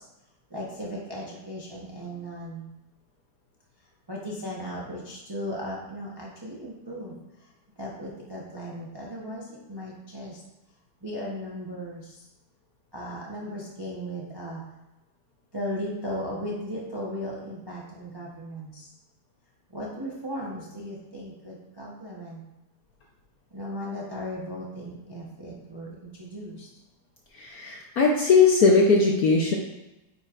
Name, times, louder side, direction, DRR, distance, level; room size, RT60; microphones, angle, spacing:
voice 1, 0.5-2.7 4.1-7.2 7.8-9.4 9.7-10.4 11.0-12.0 12.9-14.6 15.5-18.9 19.7-22.4 23.5-26.7, equal, 35° right, -4 dB, 0.4 m, -36 dB
voice 2, 27.3-29.5, left 4 dB, 70° left, 0 dB, 0.9 m, -19 dB
9.1 x 5.4 x 2.5 m, 0.99 s
omnidirectional pair, 2.3 m